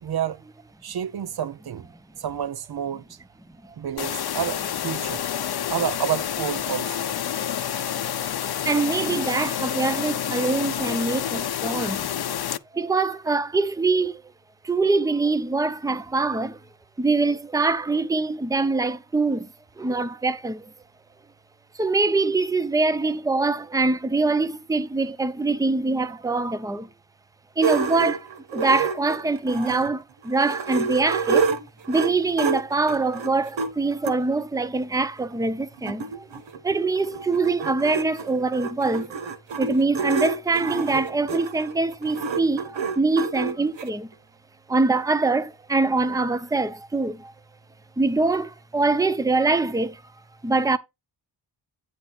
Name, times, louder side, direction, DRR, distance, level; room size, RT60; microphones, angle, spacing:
voice 1, 0.0-0.5 0.8-1.9 2.2-3.2 3.8-5.3 5.7-7.1, right 9 dB, 55° right, 0.7 m, -29 dB
sound 1, 4.0-12.6, left 10 dB, 55° left, 0.7 m, -28 dB
voice 2, 8.6-12.1 12.7-14.2 14.6-16.6 17.0-19.5 19.8-20.7 21.7-26.9 27.6-31.5 31.9-36.3 36.6-39.3 39.6-44.1 44.7-47.3 48.0-50.0 50.4-50.8, right 3 dB, 10° right, 0.6 m, -24 dB
sound 2, 27.6-29.9 30.3-34.2 34.9-35.0 35.3-35.4 35.6-43.9, right 6 dB, 75° right, 1.2 m, -28 dB
9.2 x 3.3 x 5.9 m
wide cardioid pair, 100°, 45 cm